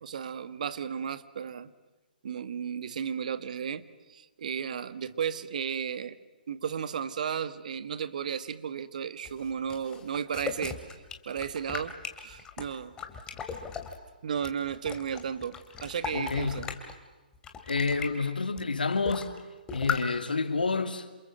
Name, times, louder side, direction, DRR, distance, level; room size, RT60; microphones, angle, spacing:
voice 1, 0.0-1.7 2.2-6.2 6.5-13.0 14.2-16.7, right 7 dB, 50° right, 1.5 m, -34 dB
sound 1, 9.2-14.0 14.4-16.9 17.3-18.1 18.6-18.7 18.9-19.4 19.7-20.0, left 6 dB, 15° left, 2.6 m, -37 dB
voice 2, 16.1-16.7 17.7-19.3 19.7-21.1, left 4 dB, 70° left, 2.6 m, -29 dB
28.0 x 28.0 x 7.6 m
figure-of-eight pair, 130°, 5 cm